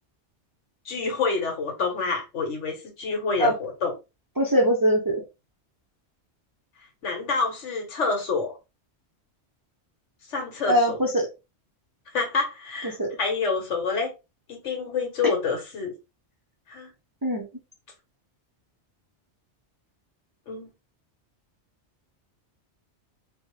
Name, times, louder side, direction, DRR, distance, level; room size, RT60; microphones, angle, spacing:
voice 1, 0.8-3.9 7.0-8.5 10.3-11.0 12.1-14.1 14.5-15.9 16.7-16.9 20.5-20.7, left 4 dB, 90° left, 1.4 m, -27 dB
voice 2, 4.4-5.2 10.7-11.3 12.8-13.1 17.2-17.4, equal, 30° right, 0.4 m, -22 dB
4.2 x 2.1 x 3.0 m
omnidirectional pair, 1.2 m